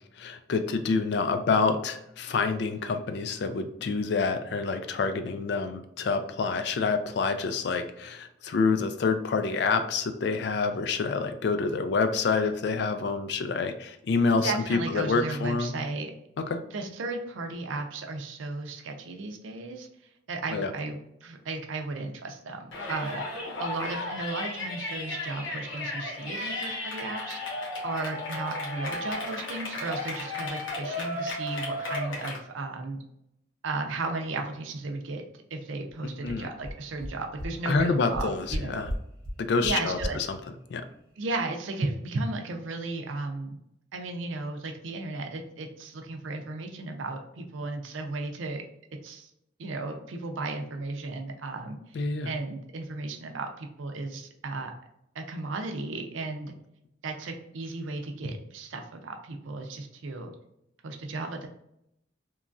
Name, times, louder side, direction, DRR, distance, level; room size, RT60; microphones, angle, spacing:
voice 1, 0.2-15.7 16.5-16.6 20.5-20.7 36.0-36.5 37.7-38.9 39.4-40.4 40.7-40.9 51.9-52.3, left 4 dB, 60° left, 9 dB, 0.3 m, -27 dB
voice 2, 14.4-16.1 16.7-19.9 20.3-23.3 23.6-33.0 33.6-35.2 35.5-38.9 39.6-40.2 41.2-43.6 43.9-48.6 49.0-49.3 49.6-52.0 52.2-54.7 55.1-56.5 57.0-60.3 60.8-61.5, right 3 dB, 90° right, 4 dB, 0.5 m, -35 dB
Yell, 22.7-32.4, left 2 dB, 80° left, 0.8 m, -34 dB
sound 1, 36.2-36.3 36.6-36.7 37.0-37.1 37.4-37.5 37.7-37.8 38.1-38.6 38.8-39.0 39.2-39.3 39.6-39.7 40.0-40.1, equal, 5° left, 0.6 m, -33 dB
3.0 x 2.3 x 2.5 m, 0.79 s
head